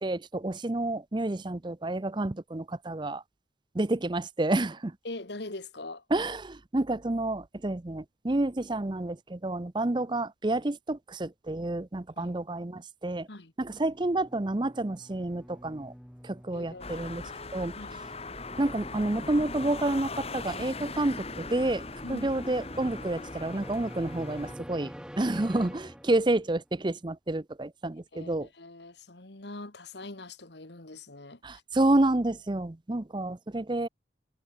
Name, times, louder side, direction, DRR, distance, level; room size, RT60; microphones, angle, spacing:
voice 1, 0.0-3.2 3.7-4.9 6.1-13.3 13.6-15.9 16.2-17.2 17.5-17.7 18.6-21.8 22.1-24.9 25.2-28.5 31.4-33.9, right 2 dB, 25° right, 0.6 m, -29 dB
voice 2, 5.0-6.0 12.2-12.3 13.3-13.5 16.5-18.1 22.0-22.3 28.1-31.6, left 2 dB, 60° left, 1.8 m, -43 dB
sound 1, 13.9-26.6, equal, 5° right, 2.1 m, -47 dB
sound 2, 16.8-24.6, left 3 dB, 30° left, 3.3 m, -40 dB
head